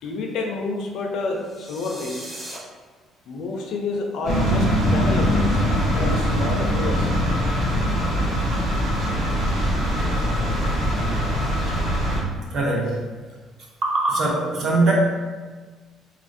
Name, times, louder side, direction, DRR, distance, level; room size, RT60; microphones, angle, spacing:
voice 1, 0.0-2.3 3.3-5.7 5.9-7.1, left 3 dB, 65° left, 1 dB, 0.4 m, -29 dB
sound 1, 1.4-2.6, equal, 5° right, 0.5 m, -38 dB
sound 2, 4.2-12.2, equal, 80° right, 1.3 m, -22 dB
voice 2, 12.5-13.0 13.8-14.9, right 2 dB, 55° right, -3 dB, 0.7 m, -21 dB
3.0 x 2.4 x 2.5 m, 1.4 s
cardioid pair, 155°, 0 cm